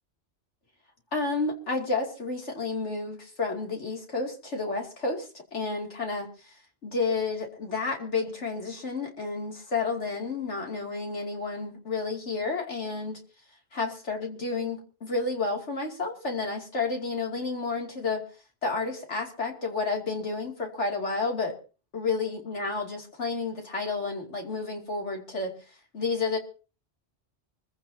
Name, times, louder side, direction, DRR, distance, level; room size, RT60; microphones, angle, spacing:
voice 1, 1.1-6.3 6.8-13.2 13.7-18.2 18.6-21.5 21.9-25.6 25.9-26.4, left 3 dB, 80° left, 1 dB, 3.0 m, -31 dB
25.0 x 15.5 x 2.8 m, 0.37 s
omnidirectional pair, 1.2 m